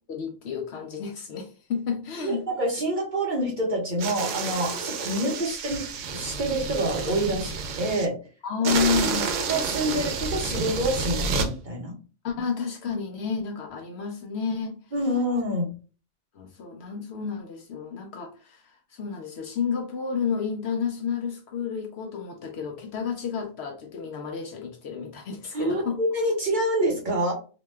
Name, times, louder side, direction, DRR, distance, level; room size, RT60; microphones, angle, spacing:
voice 1, 0.1-2.5 8.4-9.3 12.2-14.8 16.3-26.0, left 6 dB, 65° left, 0.7 m, -30 dB
voice 2, 2.2-5.8 6.1-7.5 7.8-8.2 9.5-11.9 14.9-15.7 25.5-27.3, right 1 dB, 45° right, 0.8 m, -27 dB
sound 1, 4.0-8.1 8.6-11.5, right 4 dB, 75° right, 0.9 m, -29 dB
2.8 x 2.2 x 3.2 m
omnidirectional pair, 1.3 m